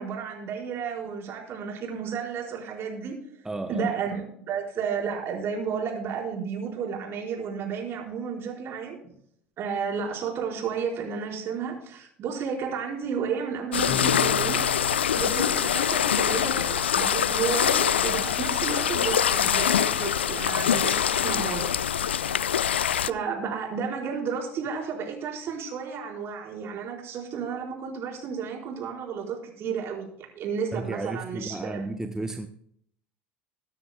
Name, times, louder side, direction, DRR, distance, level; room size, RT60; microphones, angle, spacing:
voice 1, 0.0-3.1 3.7-9.0 9.6-14.6 15.2-21.7 22.0-22.1 22.8-31.9, right 6 dB, 45° right, -1 dB, 4.7 m, -32 dB
voice 2, 3.4-3.9 30.7-32.5, right 2 dB, 10° right, 7 dB, 0.9 m, -33 dB
sound 1, 13.7-23.1, left 9 dB, 80° left, 0.4 m, -24 dB
sound 2, 13.9-16.5, left 3 dB, 35° left, 2.5 m, -36 dB
22.5 x 9.8 x 2.3 m, 0.66 s
figure-of-eight pair, 70°, 6 cm